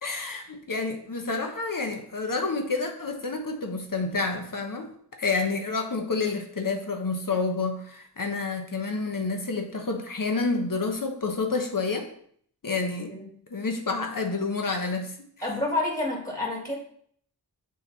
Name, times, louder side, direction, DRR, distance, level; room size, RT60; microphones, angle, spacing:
voice 1, 0.0-4.9 5.2-12.1 12.6-13.1 13.5-15.1, left 3 dB, 55° left, 4 dB, 1.1 m, -29 dB
voice 2, 15.4-16.8, left 2 dB, 20° left, -2 dB, 1.8 m, -28 dB
8.9 x 3.0 x 4.1 m, 0.62 s
wide cardioid pair, 45°, 39 cm